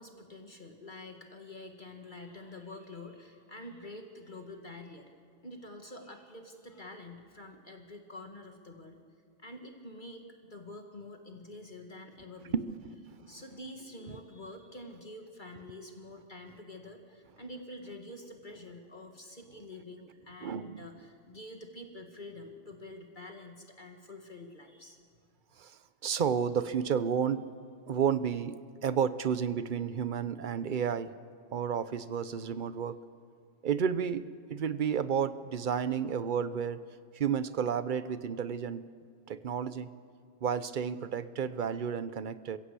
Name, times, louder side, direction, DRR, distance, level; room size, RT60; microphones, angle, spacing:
voice 1, 0.0-5.1 5.4-9.0 9.4-12.8 13.2-25.0, left 1 dB, 40° left, 4 dB, 1.8 m, -47 dB
voice 2, 12.5-13.2 20.4-20.9 25.6-27.4 27.9-28.6 28.8-31.1 31.5-33.0 33.6-36.8 37.1-38.8 39.3-39.9 40.4-42.6, right 7 dB, 45° right, 14 dB, 0.8 m, -31 dB
26.5 x 16.5 x 8.3 m, 2.2 s
omnidirectional pair, 1.3 m